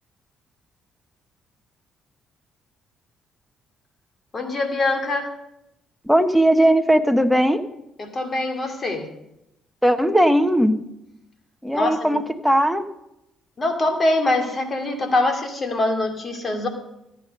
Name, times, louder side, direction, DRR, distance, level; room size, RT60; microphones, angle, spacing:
voice 1, 4.3-5.3 8.0-9.1 11.7-12.2 13.6-16.7, left 2 dB, 40° left, 5 dB, 2.5 m, -23 dB
voice 2, 6.1-7.6 9.8-10.7 11.6-12.8, right 1 dB, ahead, 7 dB, 1.1 m, -18 dB
14.0 x 9.3 x 5.3 m, 0.86 s
supercardioid pair, 55°, 0 cm